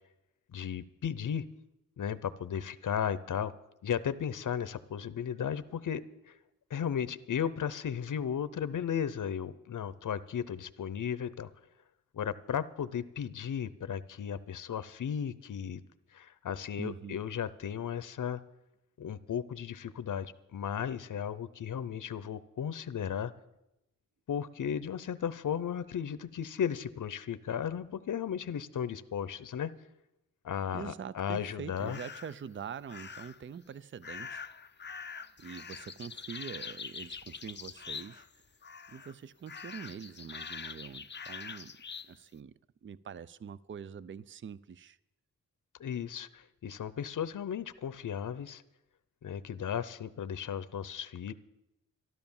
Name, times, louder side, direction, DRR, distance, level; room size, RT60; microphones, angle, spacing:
voice 1, 0.5-1.4 2.0-3.5 3.8-6.4 6.7-11.5 12.1-15.8 16.1-18.4 19.0-23.3 24.3-29.7 30.4-32.0 45.8-48.6 49.2-51.3, left 8 dB, 85° left, 0.7 m, -35 dB
voice 2, 16.8-17.2 30.7-34.5 35.4-38.3 38.9-41.8 42.1-42.5 42.8-45.0, right 7 dB, 40° right, 0.4 m, -44 dB
sound 1, 31.8-32.4 32.9-33.5 34.0-38.4 38.6-39.1 39.5-42.1, left 6 dB, 35° left, 0.6 m, -44 dB
13.0 x 12.5 x 7.1 m
wide cardioid pair, 130°, 30 cm